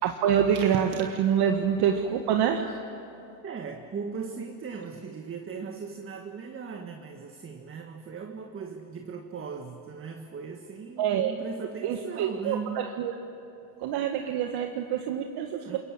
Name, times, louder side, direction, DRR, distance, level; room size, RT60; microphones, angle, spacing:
voice 1, 0.0-2.7 11.0-11.3 11.8-13.1 13.8-15.8, right 8 dB, 55° right, 4 dB, 1.6 m, -26 dB
voice 2, 3.4-12.9 15.6-15.8, right 5 dB, 25° right, 4 dB, 1.6 m, -38 dB
26.5 x 22.5 x 7.5 m, 2.8 s
supercardioid pair, 120°, 47 cm